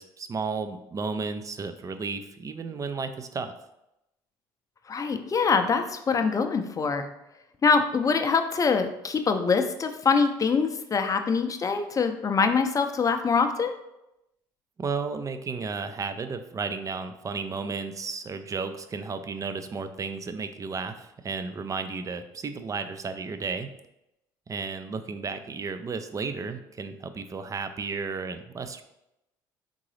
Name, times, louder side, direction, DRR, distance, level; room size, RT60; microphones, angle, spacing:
voice 1, 0.0-3.5 14.8-23.7 24.5-28.8, right 4 dB, 30° right, 9 dB, 0.5 m, -33 dB
voice 2, 4.9-7.1 7.6-13.7, left 5 dB, 30° left, 7 dB, 0.5 m, -24 dB
3.8 x 3.7 x 3.2 m, 0.87 s
hypercardioid pair, 70°, 11 cm